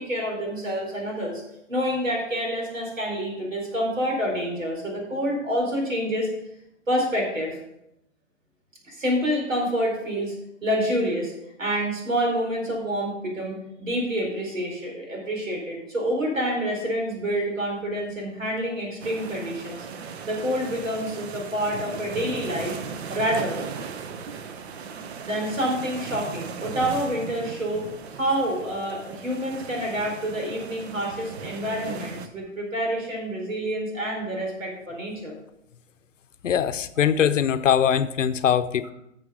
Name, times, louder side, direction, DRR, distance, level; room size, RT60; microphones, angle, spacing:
voice 1, 0.0-1.4 1.7-6.3 6.9-7.6 8.9-10.3 10.6-11.3 11.6-19.9 20.2-22.7 23.1-23.6 25.2-35.4, equal, 85° right, 0 dB, 4.6 m, -27 dB
sound 1, 19.0-32.3, right 6 dB, 55° right, 1.0 m, -37 dB
voice 2, 36.4-38.9, left 8 dB, 75° left, 12 dB, 0.8 m, -22 dB
10.5 x 7.0 x 5.0 m, 0.81 s
hypercardioid pair, 120°, 38 cm